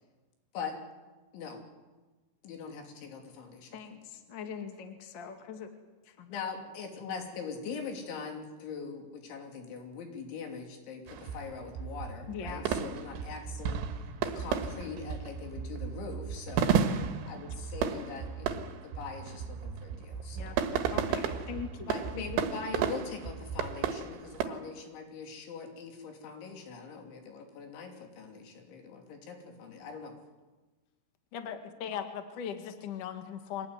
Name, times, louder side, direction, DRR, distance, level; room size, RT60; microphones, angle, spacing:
voice 1, 2.4-3.8 6.3-16.8 17.3-20.6 21.9-30.2, left 5 dB, 85° left, 3 dB, 5.3 m, -42 dB
voice 2, 3.7-5.7 6.1-6.3 12.3-12.7 20.3-20.6 20.9-22.0, left 7 dB, 40° left, 5 dB, 1.9 m, -42 dB
sound 1, 11.1-24.5, right 7 dB, 85° right, 3.9 m, -33 dB
voice 3, 31.3-33.7, left 8 dB, 55° left, 7 dB, 2.8 m, -38 dB
24.0 x 18.5 x 9.6 m, 1.3 s
omnidirectional pair, 5.3 m